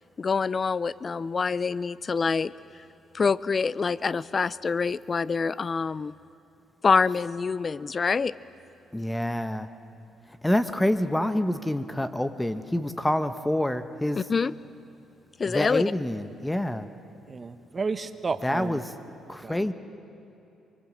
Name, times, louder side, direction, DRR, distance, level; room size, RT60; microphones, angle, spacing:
voice 1, 0.2-2.5 3.1-6.1 6.8-8.3 14.1-14.5 15.4-15.8, left 5 dB, 35° left, 19 dB, 0.5 m, -25 dB
voice 2, 8.9-9.7 10.4-14.2 15.5-16.9 18.4-18.9 19.3-19.7, left 1 dB, 10° left, 10 dB, 0.9 m, -27 dB
voice 3, 17.3-18.8 19.4-19.6, right 4 dB, 35° right, 10 dB, 1.1 m, -32 dB
24.0 x 23.0 x 7.6 m, 2.8 s
cardioid pair, 90°, 0 cm